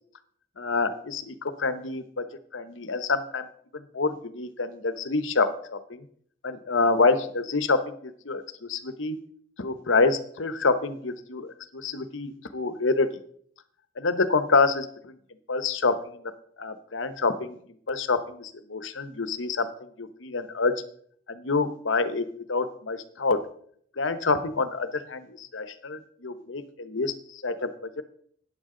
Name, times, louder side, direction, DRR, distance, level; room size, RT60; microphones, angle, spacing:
voice 1, 0.6-2.3 2.5-3.5 3.7-6.1 6.4-9.2 9.6-13.2 14.0-15.2 15.5-16.3 16.6-17.6 17.9-20.8 21.3-23.5 24.0-28.0, left 3 dB, 70° left, 12 dB, 0.9 m, -27 dB
14.0 x 9.7 x 3.8 m, 0.62 s
head